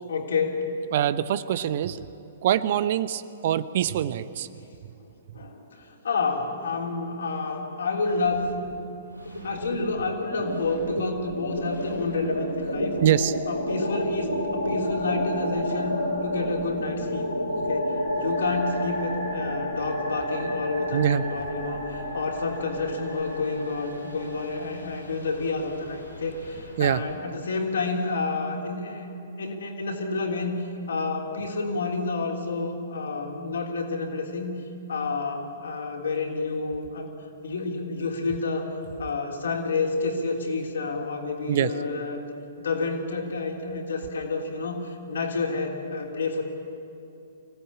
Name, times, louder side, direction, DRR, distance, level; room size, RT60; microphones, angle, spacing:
voice 1, 0.1-0.7 5.0-8.5 9.4-12.9 13.5-29.1 29.4-34.6 34.9-37.1 37.4-42.2 42.6-46.4, left 3 dB, 65° left, 1 dB, 3.4 m, -29 dB
voice 2, 0.9-2.1 2.4-4.5 13.0-13.3 20.9-21.2 26.8-27.0 41.5-41.7, right 10 dB, 50° right, 15 dB, 0.7 m, -24 dB
sound 1, 8.0-8.8 9.1-27.2, equal, 90° left, 6.5 m, -31 dB
25.0 x 16.5 x 8.8 m, 2.7 s
figure-of-eight pair, 115°, 0 cm